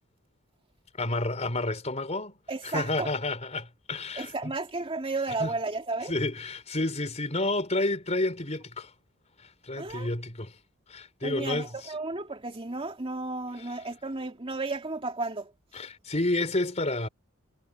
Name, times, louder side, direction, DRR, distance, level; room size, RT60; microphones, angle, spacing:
voice 1, 1.0-2.4 2.6-4.5 5.4-5.5 6.1-8.9 9.4-10.5 10.9-11.9 15.7-17.1, left 2 dB, 35° left, 4.0 m, -30 dB
voice 2, 2.5-3.1 4.2-6.2 9.8-10.1 11.2-15.5, right 3 dB, 25° right, 2.4 m, -33 dB
head